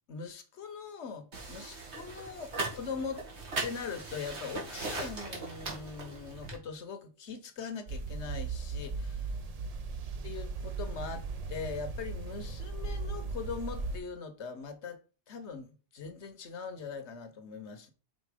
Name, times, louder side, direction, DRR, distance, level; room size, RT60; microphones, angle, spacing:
voice 1, 0.1-3.2 3.6-9.3 10.2-15.0 15.3-17.9, left 5 dB, 70° left, 1.2 m, -41 dB
sound 1, 1.3-6.6, right 3 dB, 65° right, 1.9 m, -39 dB
sound 2, 7.9-14.0, right 4 dB, 45° right, 0.5 m, -37 dB
5.2 x 4.3 x 4.9 m
omnidirectional pair, 1.2 m